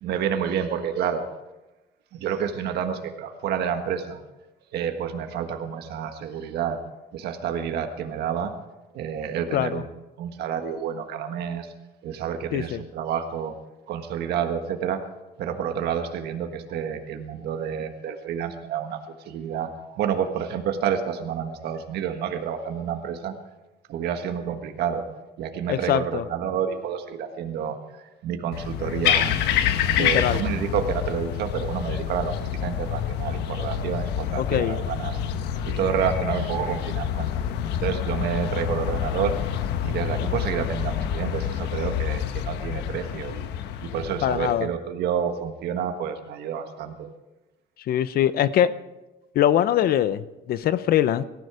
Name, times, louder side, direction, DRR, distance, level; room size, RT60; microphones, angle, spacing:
voice 1, 0.0-1.3 2.1-4.2 4.7-6.8 7.1-8.5 8.9-9.8 10.2-11.7 12.0-13.6 13.9-15.0 15.4-19.0 19.2-23.3 23.9-25.1 25.4-27.8 28.2-29.4 29.9-35.2 35.6-37.3 37.7-39.3 39.8-43.5 43.8-47.1, right 8 dB, 75° right, 6 dB, 1.6 m, -29 dB
voice 2, 9.5-9.8 12.5-12.8 25.7-26.2 30.0-30.4 34.4-34.8 44.2-44.7 47.9-48.7 49.3-51.2, left 11 dB, 65° left, 15 dB, 0.7 m, -22 dB
sound 1, 28.5-44.5, left 9 dB, 85° left, 1.2 m, -27 dB
18.5 x 14.0 x 4.9 m, 1.0 s
cardioid pair, 110°, 17 cm